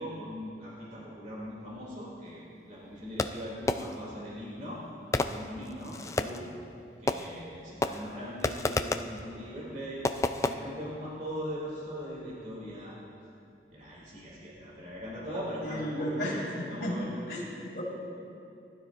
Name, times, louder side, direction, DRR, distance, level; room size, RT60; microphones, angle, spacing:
voice 1, 0.0-2.4 2.7-4.8 5.2-6.5 7.0-10.0 10.4-13.0 13.7-16.4 16.7-17.1, equal, 45° right, -6 dB, 2.7 m, -40 dB
Fireworks, 3.2-4.1 5.1-6.5 7.1-7.5 7.8-9.2 10.0-10.5, left 2 dB, 15° left, 0.3 m, -31 dB
voice 2, 15.6-17.0 17.3-17.8, equal, 65° left, -10 dB, 3.1 m, -34 dB
20.0 x 12.0 x 2.5 m, 2.6 s
head